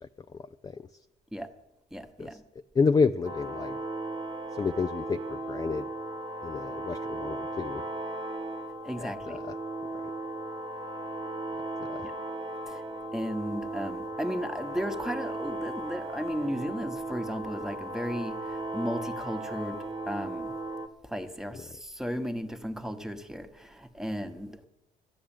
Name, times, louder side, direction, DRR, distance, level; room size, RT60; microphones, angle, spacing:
voice 1, 0.0-0.9 2.2-2.4 2.7-3.8 4.5-5.9 6.4-7.8 9.0-9.5 11.9-12.1, left 5 dB, 20° left, 9 dB, 0.4 m, -30 dB
voice 2, 1.9-2.4 8.8-9.4 12.0-12.1 12.7-12.8 13.1-20.5 21.0-24.7, equal, 5° right, 8 dB, 1.2 m, -35 dB
sound 1, 3.2-20.9, right 2 dB, 25° right, 1.2 m, -36 dB
12.5 x 8.8 x 9.0 m, 0.97 s
cardioid pair, 110°, 17 cm